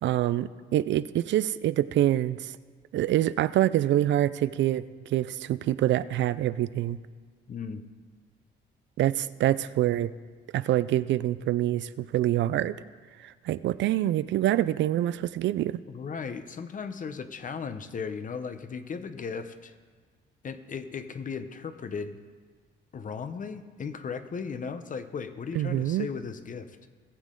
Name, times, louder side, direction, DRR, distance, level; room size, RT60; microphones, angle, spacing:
voice 1, 0.0-2.5 2.9-7.0 9.0-10.1 10.5-12.7 13.2-15.8 25.6-26.1, right 13 dB, 70° right, 16 dB, 0.4 m, -26 dB
voice 2, 7.5-7.8 15.9-19.7 20.4-22.2 22.9-26.8, left 5 dB, 40° left, 11 dB, 0.8 m, -36 dB
18.5 x 7.3 x 3.8 m, 1.5 s
cardioid pair, 90°, 20 cm